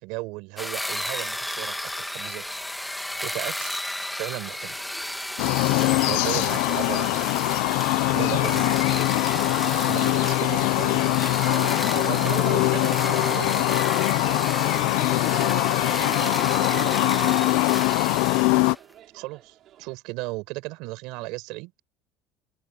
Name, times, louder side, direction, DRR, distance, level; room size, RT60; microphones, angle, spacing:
voice 1, 0.0-2.4 3.2-3.7 4.2-4.8 6.1-7.2 8.1-8.7 9.9-13.6 19.1-21.7, right 23 dB, 75° right, 4.9 m, -35 dB
sound 1, 0.6-18.8, left 1 dB, 5° left, 1.8 m, -33 dB
voice 2, 3.1-3.5, left 13 dB, 50° left, 7.6 m, -52 dB
sound 2, 4.3-19.9, right 12 dB, 50° right, 3.8 m, -40 dB
sound 3, 5.4-18.8, left 24 dB, 85° left, 0.6 m, -22 dB
cardioid pair, 130°, 0 cm